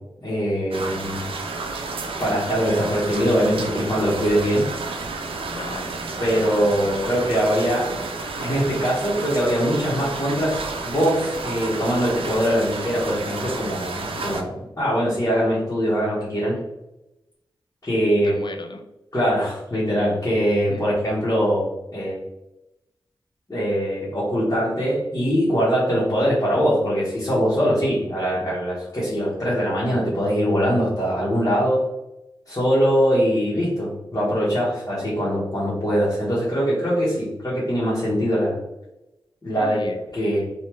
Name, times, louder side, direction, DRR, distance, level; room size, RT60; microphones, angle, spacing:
voice 1, 0.2-1.2 2.2-4.6 6.2-7.9 8.2-16.5 17.8-18.3 19.1-21.7 21.9-22.2 23.5-31.8 32.5-38.6 39.4-39.8 40.1-40.4, equal, 35° left, -9 dB, 1.4 m, -22 dB
sound 1, 0.7-14.4, right 3 dB, 90° right, 0.4 m, -31 dB
voice 2, 5.5-6.0 18.2-18.8 20.7-20.8 39.6-40.5, left 3 dB, 60° left, 6 dB, 0.5 m, -36 dB
3.3 x 2.7 x 3.0 m, 0.93 s
cardioid pair, 60°, 9 cm